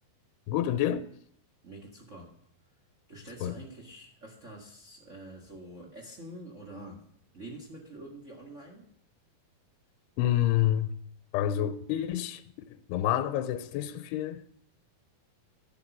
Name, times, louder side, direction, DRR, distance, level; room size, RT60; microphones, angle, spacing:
voice 1, 0.5-1.1 3.4-3.5 10.2-10.9 11.3-12.4 12.9-14.5, left 12 dB, 85° left, 2.6 m, -28 dB
voice 2, 1.6-2.3 3.1-7.1 7.3-8.9, right 1 dB, 65° right, 0.7 m, -46 dB
12.0 x 7.8 x 6.0 m
omnidirectional pair, 4.7 m